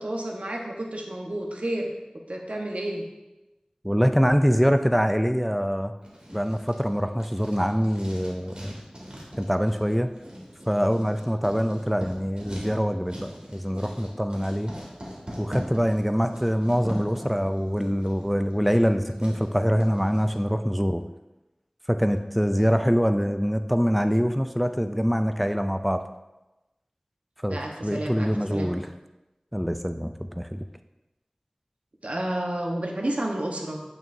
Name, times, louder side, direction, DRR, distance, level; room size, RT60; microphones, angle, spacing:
voice 1, 0.0-1.9 2.3-3.0 27.5-28.8 32.0-33.8, right 1 dB, 70° right, 0 dB, 1.1 m, -30 dB
voice 2, 3.8-5.9 6.3-8.7 9.4-10.1 10.7-14.7 15.4-21.0 21.9-26.0 27.4-28.9 29.5-30.6, equal, ahead, 8 dB, 0.3 m, -24 dB
Writing, 6.0-20.4, equal, 45° right, 2.1 m, -41 dB
8.8 x 6.0 x 2.7 m, 1.0 s
wide cardioid pair, 40°, 2 cm